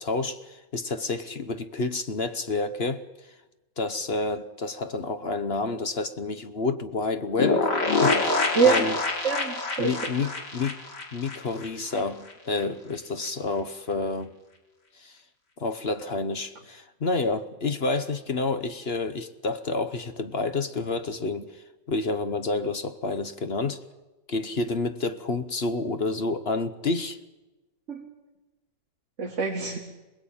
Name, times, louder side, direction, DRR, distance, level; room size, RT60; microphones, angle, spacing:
voice 1, 0.0-3.0 3.8-7.7 8.0-9.0 9.8-10.8 11.1-14.3 15.0-15.2 15.6-23.8 24.3-27.2, left 3 dB, 40° left, 1.0 m, -29 dB
sound 1, 7.4-12.0 12.3-12.4 12.6-12.7, left 3 dB, 75° left, 3.4 m, -26 dB
voice 2, 8.5-8.9 9.2-10.3 27.9-28.1 29.2-29.8, right 5 dB, 45° right, 2.4 m, -25 dB
27.5 x 20.0 x 8.7 m
omnidirectional pair, 1.9 m